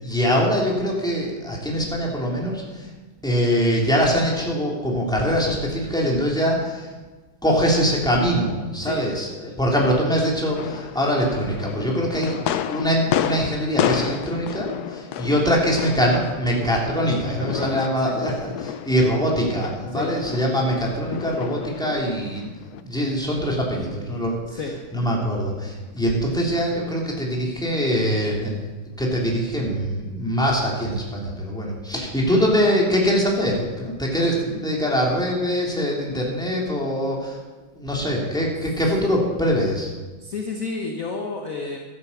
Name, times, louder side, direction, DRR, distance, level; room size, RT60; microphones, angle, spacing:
voice 1, 0.0-2.9 3.2-6.9 7.4-12.4 12.7-22.5 22.8-24.6 24.9-28.7 29.0-37.4 37.7-39.9, equal, ahead, -3 dB, 3.0 m, -23 dB
sound 1, 10.5-22.8, left 10 dB, 80° left, 0.8 m, -30 dB
voice 2, 17.2-18.2 19.9-20.2 24.5-24.7 32.2-32.5 40.2-41.8, left 3 dB, 45° left, 2 dB, 1.4 m, -31 dB
12.5 x 10.5 x 7.3 m, 1.3 s
omnidirectional pair, 2.4 m